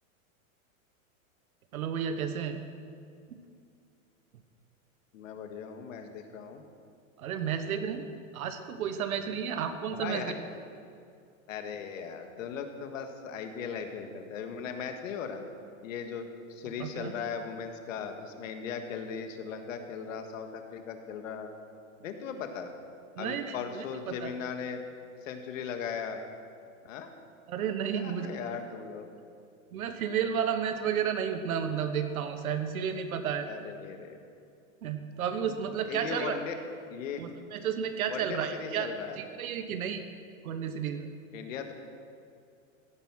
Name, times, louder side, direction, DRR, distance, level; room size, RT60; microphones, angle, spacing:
voice 1, 1.7-2.6 3.3-3.4 7.2-8.0 8.3-10.2 16.8-17.1 23.1-24.3 27.5-28.4 29.7-33.5 34.8-36.4 37.2-38.9 39.2-40.0 40.4-41.1, right 8 dB, 85° right, 8 dB, 1.3 m, -32 dB
voice 2, 5.1-6.6 10.0-10.4 11.5-15.4 15.8-21.5 22.0-22.7 23.2-24.8 25.2-26.2 26.9-27.1 27.9-29.1 33.5-34.2 35.8-36.6 36.9-37.3 38.1-39.2 41.3-41.7, left 6 dB, 65° left, 6 dB, 1.8 m, -38 dB
16.0 x 9.4 x 6.2 m, 2.4 s
supercardioid pair, 160°, 42 cm